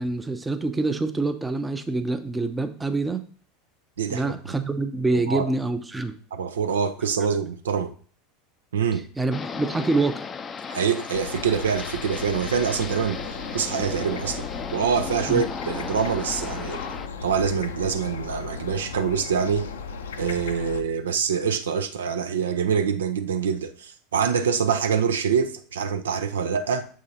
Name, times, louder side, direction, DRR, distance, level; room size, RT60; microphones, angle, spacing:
voice 1, 0.0-3.2 4.1-6.2 9.2-10.3 15.3-15.4, right 3 dB, 10° right, 0.6 m, -26 dB
voice 2, 4.0-4.3 5.1-5.5 6.3-7.9 8.7-9.1 10.7-13.2 13.5-14.5 14.7-16.8 17.2-19.7 20.2-26.9, right 6 dB, 75° right, 0.5 m, -25 dB
sound 1, 9.3-17.1, left 5 dB, 25° left, 0.4 m, -35 dB
sound 2, 11.1-20.8, left 6 dB, 75° left, 0.5 m, -36 dB
7.1 x 3.7 x 4.2 m
figure-of-eight pair, 80°, 0 cm